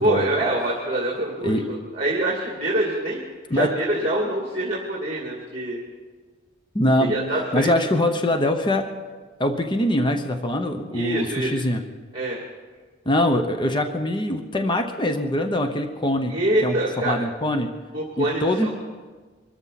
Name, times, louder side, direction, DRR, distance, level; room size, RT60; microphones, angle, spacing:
voice 1, 0.0-5.8 7.1-7.7 10.9-11.6 12.1-12.4 16.3-17.2 17.9-18.7, right 1 dB, 30° right, -2 dB, 2.4 m, -25 dB
voice 2, 6.7-7.2 7.5-8.8 9.4-11.8 13.1-16.3 16.6-17.7 18.2-18.7, left 1 dB, 25° left, 6 dB, 0.9 m, -23 dB
24.5 x 13.5 x 4.1 m, 1.4 s
head